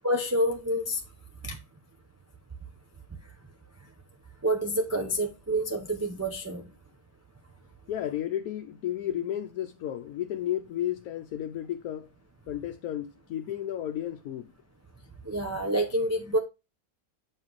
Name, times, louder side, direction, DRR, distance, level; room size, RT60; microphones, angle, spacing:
voice 1, 0.0-1.0 1.4-1.6 4.4-6.6 15.2-16.4, right 1 dB, 15° right, 0.6 m, -28 dB
voice 2, 7.9-12.1 12.5-14.5, left 11 dB, 85° left, 1.1 m, -33 dB
7.3 x 5.2 x 3.1 m
omnidirectional pair, 1.5 m